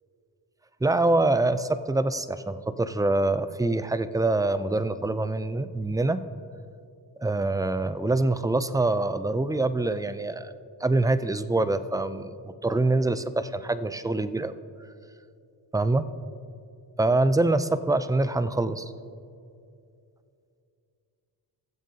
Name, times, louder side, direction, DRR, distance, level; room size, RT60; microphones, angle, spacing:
voice 1, 0.8-6.2 7.2-10.5 10.8-12.3 12.6-14.5 15.7-16.0 17.0-18.9, right 2 dB, 10° right, 13 dB, 0.4 m, -25 dB
21.0 x 7.3 x 2.8 m, 2.5 s
cardioid pair, 55°, 45 cm